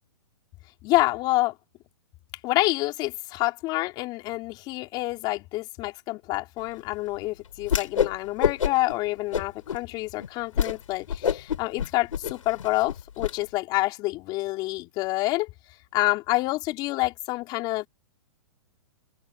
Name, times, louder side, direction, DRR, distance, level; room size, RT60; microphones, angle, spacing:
voice 1, 0.8-1.5 2.4-15.5 15.9-17.9, left 19 dB, 25° left, 4.7 m, -27 dB
Whoosh swoosh swish, 7.6-8.1 8.4-8.9 9.3-9.8 10.2-10.3 10.6-10.8 11.1-13.3, left 8 dB, 80° left, 6.3 m, -26 dB
open air
hypercardioid pair, 160°, 17 cm